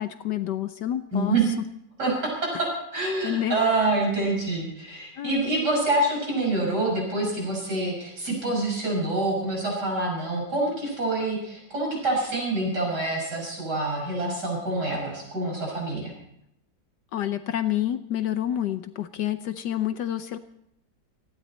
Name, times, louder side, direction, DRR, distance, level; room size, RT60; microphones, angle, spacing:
voice 1, 0.0-1.5 3.2-3.6 5.2-5.6 17.1-20.4, left 11 dB, 70° left, 10 dB, 1.3 m, -28 dB
voice 2, 1.1-1.6 2.0-16.1, right 2 dB, 60° right, -1 dB, 6.6 m, -26 dB
18.5 x 15.5 x 4.3 m, 0.76 s
omnidirectional pair, 2.0 m